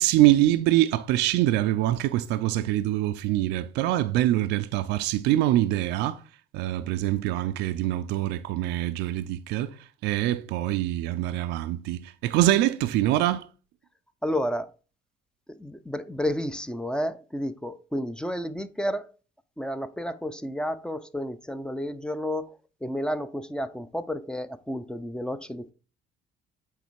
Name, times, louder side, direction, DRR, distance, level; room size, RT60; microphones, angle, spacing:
voice 1, 0.0-6.2 6.5-9.8 10.0-13.5, right 14 dB, 90° right, 0.4 m, -24 dB
voice 2, 14.2-14.7 15.5-19.1 19.6-25.7, equal, 5° left, 0.5 m, -31 dB
8.1 x 3.3 x 4.6 m
cardioid pair, 110°, 17 cm